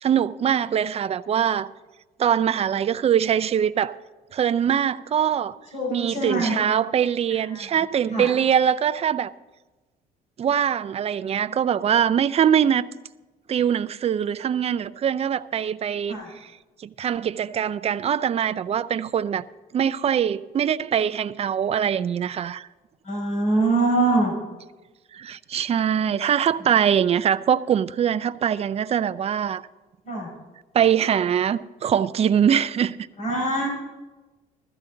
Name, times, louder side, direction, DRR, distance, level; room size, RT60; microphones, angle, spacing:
voice 1, 0.0-1.7 2.2-3.9 4.3-5.6 5.9-9.3 10.4-12.9 13.5-16.5 16.8-19.4 19.7-22.7 25.1-29.6 30.7-33.0, right 8 dB, 40° right, 0.5 m, -23 dB
voice 2, 5.7-6.6 7.5-7.7 8.1-8.3 16.1-16.3 23.0-24.3 30.1-30.3 33.2-33.7, right 2 dB, 45° left, 5.5 m, -23 dB
15.0 x 13.5 x 3.9 m
cardioid pair, 110°, 17 cm